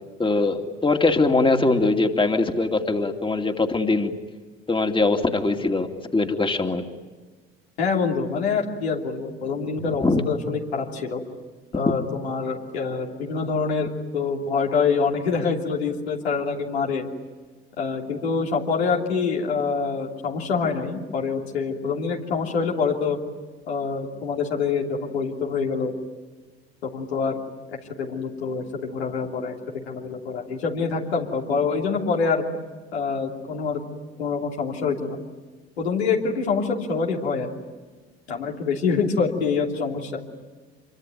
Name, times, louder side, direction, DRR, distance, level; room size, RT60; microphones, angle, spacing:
voice 1, 0.2-4.1 4.7-6.8 9.8-10.2, left 3 dB, 15° left, 5 dB, 2.6 m, -22 dB
voice 2, 7.8-11.2 11.7-17.0 17.8-23.2 23.7-25.9 26.8-27.4 27.7-29.5 29.8-32.4 32.9-33.8 34.2-35.2 35.8-37.5 38.3-40.2, left 5 dB, 80° left, -1 dB, 3.1 m, -25 dB
26.5 x 23.5 x 9.2 m, 1.4 s
figure-of-eight pair, 55°, 31 cm